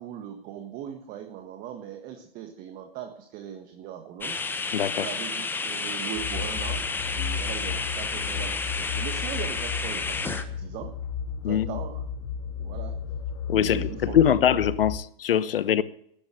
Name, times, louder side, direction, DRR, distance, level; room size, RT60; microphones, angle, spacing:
voice 1, 0.0-4.4 4.9-10.9 11.4-12.0 12.5-13.0 13.5-14.6, right 10 dB, 30° right, 1.5 m, -39 dB
sound 1, 4.2-10.4, left 4 dB, 5° left, 0.9 m, -31 dB
voice 2, 4.7-5.1 11.4-11.8 13.5-15.8, left 10 dB, 65° left, 1.1 m, -23 dB
sound 2, 6.2-15.0, left 6 dB, 35° left, 1.3 m, -34 dB
13.5 x 10.5 x 8.9 m
hypercardioid pair, 130°, 30 cm